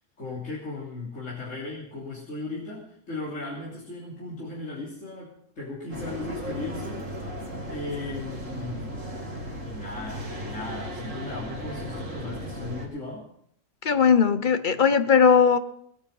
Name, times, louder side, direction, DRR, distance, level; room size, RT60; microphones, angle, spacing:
voice 1, 0.2-7.0 7.7-9.1 9.6-13.3, left 2 dB, 70° left, -7 dB, 3.7 m, -36 dB
sound 1, 5.9-12.9, equal, 80° right, 3.1 m, -36 dB
voice 2, 13.8-15.6, left 6 dB, 45° left, 11 dB, 0.9 m, -19 dB
20.0 x 9.4 x 5.4 m, 0.71 s
omnidirectional pair, 1.3 m